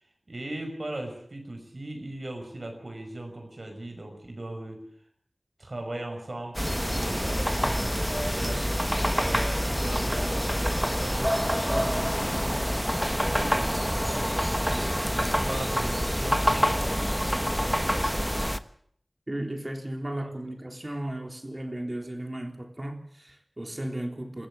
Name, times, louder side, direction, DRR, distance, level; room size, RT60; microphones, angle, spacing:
voice 1, 0.3-4.8 5.6-6.6 6.9-8.7 9.2-11.4 11.7-12.8 13.1-17.0 20.2-20.3, right 1 dB, 60° right, 5.8 m, -38 dB
sound 1, 6.5-18.6, equal, ahead, 1.1 m, -26 dB
voice 2, 19.3-24.5, right 1 dB, 35° right, 3.6 m, -35 dB
21.0 x 15.5 x 8.7 m
wide cardioid pair, 50°, 0 cm